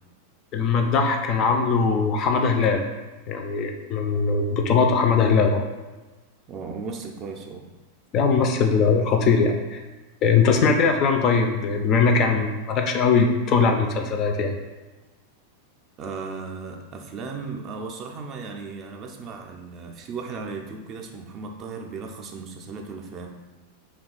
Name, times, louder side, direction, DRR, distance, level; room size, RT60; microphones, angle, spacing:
voice 1, 0.5-2.8 3.3-5.6 8.1-9.8 10.2-14.6, left 5 dB, 35° left, 4 dB, 0.3 m, -20 dB
voice 2, 6.5-7.6 16.0-23.3, right 4 dB, 30° right, 2 dB, 0.4 m, -36 dB
2.9 x 2.3 x 3.7 m, 1.2 s
figure-of-eight pair, 90°, 0 cm